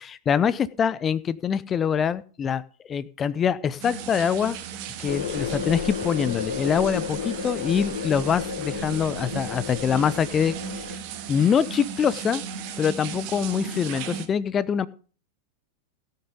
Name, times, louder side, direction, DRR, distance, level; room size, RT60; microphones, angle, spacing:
voice 1, 0.0-2.6 2.9-4.6 5.0-10.5 11.3-12.4 12.8-14.9, left 7 dB, 25° left, 17 dB, 0.6 m, -24 dB
sound 1, 3.8-14.3, right 8 dB, 45° right, 1.7 m, -36 dB
sound 2, 5.1-11.0, left 7 dB, 65° left, 1.2 m, -33 dB
17.0 x 6.8 x 5.2 m, 0.39 s
figure-of-eight pair, 90°, 0 cm